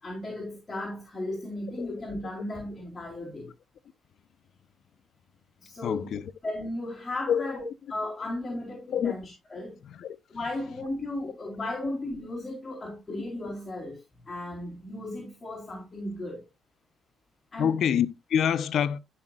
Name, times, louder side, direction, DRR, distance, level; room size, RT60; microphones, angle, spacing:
voice 1, 0.0-3.5 5.6-6.1 6.4-7.6 7.9-9.8 10.3-16.5 17.5-17.7, left 1 dB, 20° left, 4.0 m, -35 dB
voice 2, 5.8-6.2 7.3-7.6 8.9-9.1 9.8-10.2 17.6-19.0, left 8 dB, 65° left, 0.8 m, -26 dB
15.5 x 5.8 x 2.4 m
cardioid pair, 90°, 0 cm